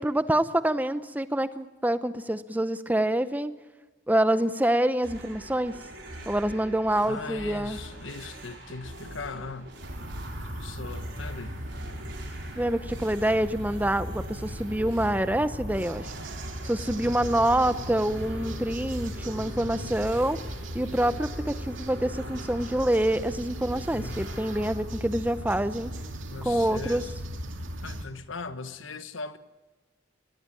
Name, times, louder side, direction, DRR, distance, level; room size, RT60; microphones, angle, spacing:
voice 1, 0.0-3.6 4.1-5.7 6.3-7.8 12.6-16.1 16.6-20.4 20.7-25.9 26.4-27.1, right 1 dB, 10° right, 0.7 m, -26 dB
sound 1, 5.0-24.7, right 1 dB, 65° right, 5.8 m, -43 dB
voice 2, 7.0-9.7 10.5-12.1 12.9-13.4 17.0-17.5 23.9-24.3 26.3-27.1 27.8-29.4, left 4 dB, 90° left, 1.2 m, -40 dB
sound 2, 9.8-28.1, equal, 90° right, 2.5 m, -37 dB
22.0 x 19.5 x 8.9 m
head